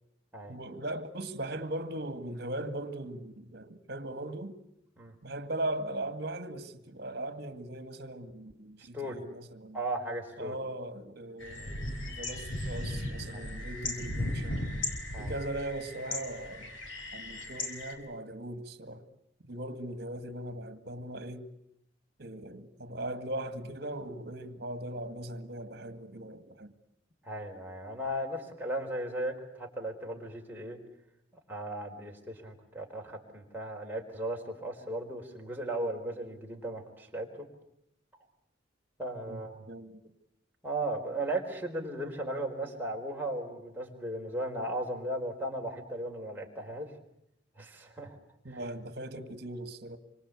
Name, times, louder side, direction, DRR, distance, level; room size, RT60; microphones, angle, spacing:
voice 1, 0.5-4.6 5.2-9.8 10.4-14.7 15.2-16.8 17.1-19.1 19.5-21.5 22.2-26.7 39.3-40.1 48.4-50.0, right 1 dB, 55° right, 2.1 m, -39 dB
voice 2, 8.8-9.2 9.7-10.5 13.3-13.5 15.1-15.3 27.2-30.8 31.5-37.3 39.0-39.6 40.6-46.9 47.6-48.2 48.5-48.6, right 1 dB, 10° right, 4.3 m, -36 dB
sound 1, 11.4-17.9, left 1 dB, 80° left, 4.8 m, -37 dB
27.0 x 25.0 x 8.4 m
head